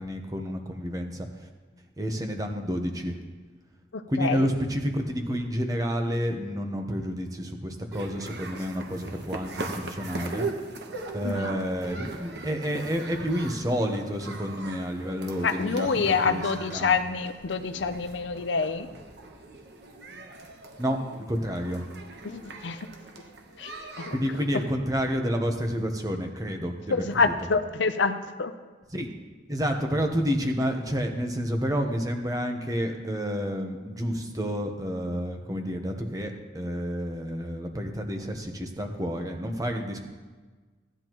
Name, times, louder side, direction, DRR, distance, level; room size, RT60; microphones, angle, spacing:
voice 1, 0.0-1.5 2.0-3.2 4.1-10.5 11.1-15.9 16.2-16.4 16.7-17.0 20.8-21.0 21.3-21.8 24.1-27.3 28.9-29.1 29.5-40.0, equal, 20° right, 4 dB, 0.9 m, -29 dB
voice 2, 3.9-4.5 11.2-11.6 15.4-18.9 22.2-22.8 23.6-23.7 24.0-24.2 26.9-28.5, left 4 dB, 75° left, 9 dB, 0.6 m, -27 dB
sound 1, 7.9-24.7, right 3 dB, 60° right, 1.1 m, -40 dB
15.5 x 10.0 x 3.1 m, 1.4 s
head